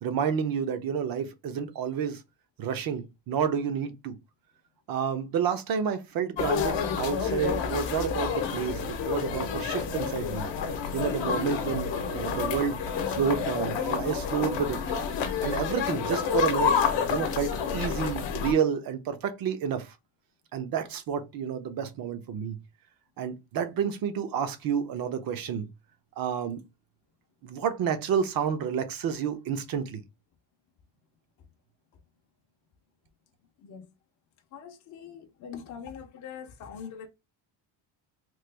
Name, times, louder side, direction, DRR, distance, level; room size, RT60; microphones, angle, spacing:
voice 1, 0.0-2.2 2.6-4.2 4.9-10.5 10.9-12.8 13.1-14.8 15.4-16.7 17.1-19.9 20.5-22.6 23.2-25.7 26.2-26.6 27.4-30.0, right 7 dB, 50° right, 0.6 m, -30 dB
sound 1, 6.4-18.5, left 6 dB, 70° left, 0.8 m, -29 dB
voice 2, 34.5-37.1, left 7 dB, 40° left, 0.5 m, -42 dB
3.1 x 2.2 x 3.2 m
cardioid pair, 165°, 46 cm